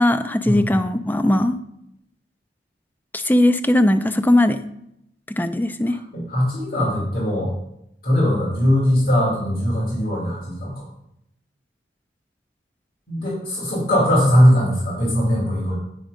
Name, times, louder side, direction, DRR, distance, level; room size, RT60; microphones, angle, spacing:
voice 1, 0.0-1.6 3.1-4.6 5.3-6.0, left 1 dB, 10° left, 11 dB, 0.4 m, -19 dB
voice 2, 6.1-7.5 8.0-10.8 13.1-15.7, equal, 55° left, -5 dB, 2.7 m, -20 dB
9.4 x 5.3 x 5.0 m, 0.79 s
head